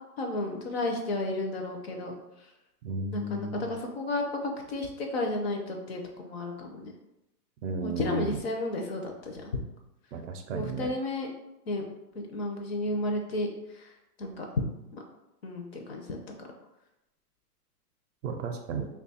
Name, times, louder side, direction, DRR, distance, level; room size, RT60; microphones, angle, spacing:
voice 1, 0.2-2.1 3.1-4.2 4.7-6.9 7.8-9.4 10.5-11.3 11.7-11.8 12.1-13.5 13.7-13.9 14.2-14.6 14.9-15.0 15.4-16.2, left 2 dB, 40° left, 2 dB, 0.5 m, -32 dB
voice 2, 2.8-3.7 7.6-8.4 10.1-10.9 18.2-18.9, right 3 dB, 55° right, 5 dB, 0.5 m, -34 dB
3.1 x 2.3 x 4.0 m, 0.91 s
hypercardioid pair, 160°, 48 cm